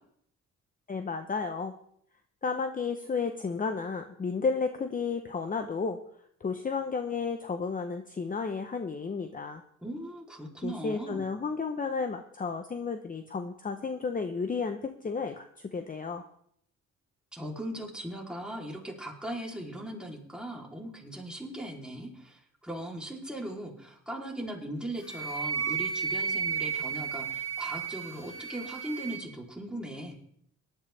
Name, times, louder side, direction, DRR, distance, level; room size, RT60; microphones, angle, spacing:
voice 1, 0.9-1.7 2.4-6.0 6.4-9.6 10.6-16.2, left 5 dB, 25° left, 7 dB, 0.9 m, -32 dB
voice 2, 9.8-11.2 17.3-30.1, right 1 dB, 5° right, -1 dB, 3.3 m, -39 dB
Wind instrument woodwind instrument, 25.0-29.2, right 7 dB, 90° left, 6.0 m, -33 dB
18.0 x 11.5 x 3.4 m, 0.68 s
cardioid pair, 90°, 30 cm